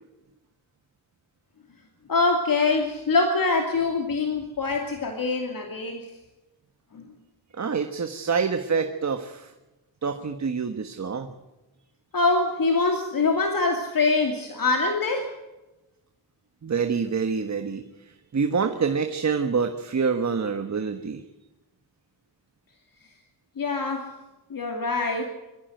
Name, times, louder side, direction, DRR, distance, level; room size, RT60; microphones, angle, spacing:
voice 1, 2.1-6.1 6.9-7.0 12.1-15.3 23.6-24.1 24.5-25.2, left 3 dB, 60° left, 3 dB, 2.7 m, -24 dB
voice 2, 7.6-9.5 10.0-11.3 16.6-17.8 18.3-21.2, right 5 dB, 45° right, 7 dB, 1.4 m, -26 dB
23.0 x 15.0 x 7.9 m, 1.0 s
wide cardioid pair, 115°, 39 cm